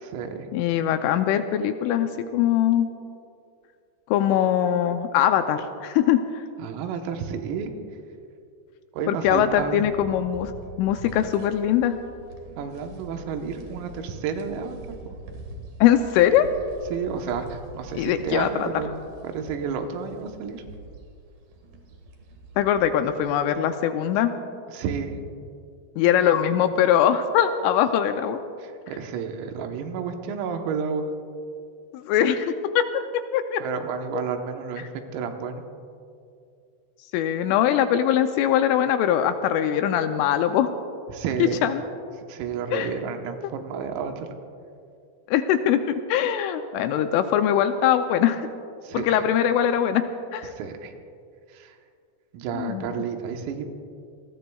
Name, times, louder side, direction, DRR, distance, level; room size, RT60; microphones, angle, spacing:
voice 1, 0.0-0.5 6.6-7.7 8.9-9.8 12.6-14.8 16.9-20.6 24.7-25.2 28.6-31.1 33.6-35.6 41.1-41.6 42.3-44.3 48.8-49.1 50.6-50.9 51.5-51.8 52.3-53.7, right 6 dB, 85° right, 5 dB, 3.8 m, -31 dB
voice 2, 0.5-2.9 4.1-6.4 9.1-10.5 10.8-11.9 15.8-16.5 17.9-18.8 22.6-24.3 26.0-28.4 31.9-33.6 37.1-40.7 41.6-41.8 42.7-42.9 45.3-48.5 48.9-50.0 50.3-50.5 52.5-52.9, left 10 dB, 85° left, 8 dB, 2.9 m, -22 dB
sound 1, 9.3-23.5, right 1 dB, 60° right, 3.0 m, -44 dB
28.0 x 19.5 x 2.3 m, 2.4 s
omnidirectional pair, 5.9 m